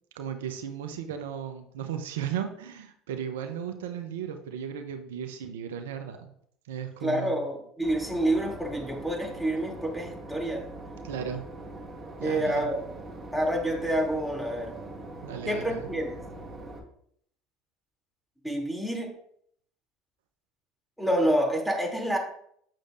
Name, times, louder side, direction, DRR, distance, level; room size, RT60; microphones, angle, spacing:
voice 1, 0.1-6.3 6.7-7.4 11.0-11.4 12.2-12.7 15.2-15.9, right 8 dB, 80° right, 7 dB, 0.7 m, -35 dB
voice 2, 7.0-10.6 12.2-12.8 13.3-14.7 15.4-16.2 18.4-19.1 21.0-22.2, right 1 dB, ahead, -1 dB, 2.9 m, -28 dB
Boat Water vehicle / Engine, 7.8-16.8, right 2 dB, 25° right, 2.3 m, -42 dB
8.9 x 6.4 x 2.6 m, 0.67 s
hypercardioid pair, 75°, 0 cm